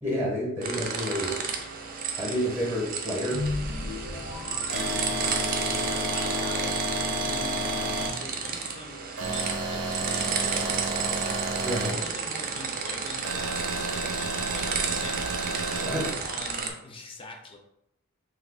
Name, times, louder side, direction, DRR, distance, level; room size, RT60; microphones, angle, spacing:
voice 1, 0.0-1.4 2.2-3.5 11.6-12.0 15.8-16.1, equal, 10° right, -3 dB, 0.7 m, -29 dB
sound 1, 0.6-16.7, right 5 dB, 40° right, 0.4 m, -32 dB
sound 2, 3.3-5.8, left 3 dB, 85° left, 0.4 m, -35 dB
voice 2, 4.7-15.5 16.2-17.6, left 2 dB, 25° left, 2 dB, 0.4 m, -44 dB
sound 3, 4.7-8.1 9.2-11.9 13.2-16.1, right 1 dB, 85° right, 0.6 m, -31 dB
3.0 x 2.3 x 3.5 m, 0.83 s
head